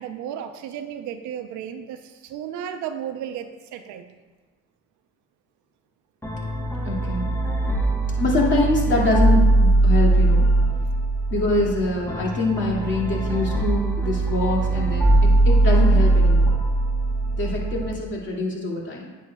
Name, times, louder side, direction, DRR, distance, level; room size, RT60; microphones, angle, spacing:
voice 1, 0.0-4.1, right 9 dB, 75° right, 8 dB, 0.8 m, -34 dB
sound 1, 6.2-17.9, right 2 dB, 5° left, 1.3 m, -20 dB
voice 2, 6.8-7.3 8.2-10.5 11.3-16.6 17.3-19.1, left 2 dB, 40° left, -2 dB, 2.4 m, -24 dB
9.8 x 7.3 x 2.4 m, 1.3 s
supercardioid pair, 90°, 30 cm